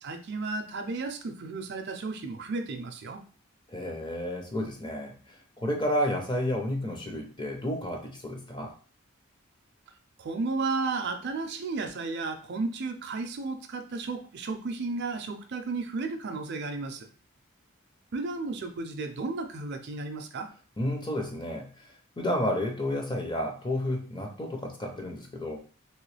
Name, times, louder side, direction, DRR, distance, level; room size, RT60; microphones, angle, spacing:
voice 1, 0.0-3.2 10.2-17.1 18.1-20.5, right 3 dB, 50° right, 6 dB, 0.4 m, -33 dB
voice 2, 3.7-8.7 20.8-25.6, left 1 dB, 20° left, 2 dB, 0.6 m, -31 dB
3.0 x 3.0 x 3.2 m, 0.40 s
head